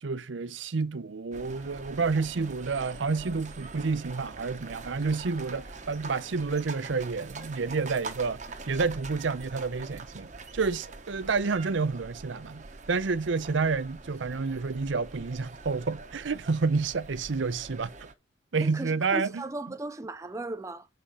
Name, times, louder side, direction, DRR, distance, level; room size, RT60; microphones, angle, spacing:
voice 1, 0.0-10.3 10.5-17.9 18.5-19.4, right 4 dB, 75° right, 0.6 m, -29 dB
sound 1, 1.3-18.1, right 3 dB, 35° right, 0.9 m, -44 dB
voice 2, 18.6-20.9, right 2 dB, 15° right, 0.4 m, -36 dB
6.9 x 4.2 x 4.9 m
head